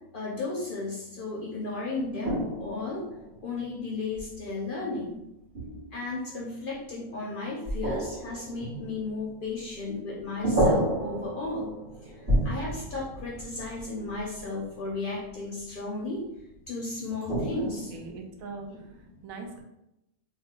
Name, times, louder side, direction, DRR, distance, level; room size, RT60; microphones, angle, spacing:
voice 1, 0.1-3.1 3.4-5.2 5.9-11.7 12.0-12.2 12.4-16.2 16.7-17.9 18.7-19.2, left 3 dB, 55° left, -3 dB, 0.6 m, -34 dB
sound 1, 2.2-4.5 5.5-6.1 7.6-10.1 10.4-14.7 17.3-18.2, right 1 dB, 45° right, 1.6 m, -31 dB
voice 2, 17.6-18.7 19.2-19.6, right 4 dB, 80° right, 3 dB, 1.1 m, -41 dB
3.2 x 2.3 x 3.6 m, 0.87 s
omnidirectional pair, 1.4 m